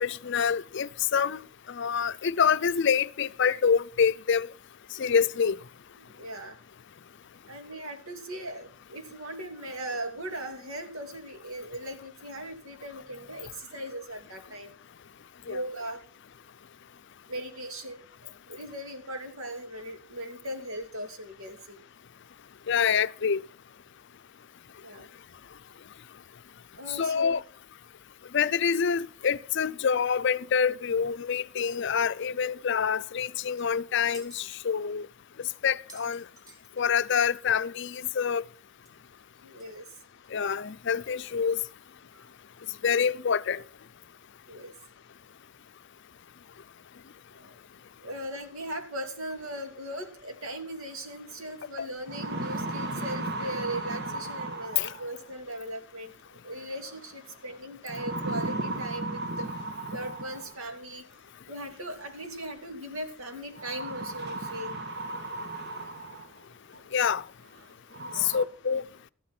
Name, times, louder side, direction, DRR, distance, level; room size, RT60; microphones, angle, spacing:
voice 1, 0.0-1.4 1.7-4.5 5.0-5.6 15.5-15.6 22.7-23.4 26.9-27.4 28.3-35.1 35.6-36.2 36.8-38.4 40.3-41.6 42.8-43.6 54.8-54.9 66.9-67.2 68.2-68.8, left 6 dB, 55° left, 0.5 m, -26 dB
voice 2, 6.0-6.6 7.5-14.7 15.5-16.0 17.3-21.8 24.8-25.1 26.8-27.4 39.4-39.9 42.1-42.3 44.5-44.7 47.3-47.6 48.0-59.5 59.9-61.0 61.5-64.8 66.7-66.8 68.0-68.3, right 1 dB, 80° right, 2.7 m, -39 dB
sound 1, 33.2-33.3 33.6-34.6 35.2-35.3 35.6-37.2 37.5-37.6 37.9-38.0 38.9-39.0 39.6-39.7 40.2-40.3, right 2 dB, 20° right, 3.4 m, -53 dB
sound 2, 51.3-51.4 51.9-55.3 56.7-57.1 57.9-60.7 61.9-62.0 63.6-66.4 66.9-67.0 67.6-67.7 67.9-68.4, right 2 dB, 55° right, 1.6 m, -35 dB
14.0 x 11.5 x 4.4 m
head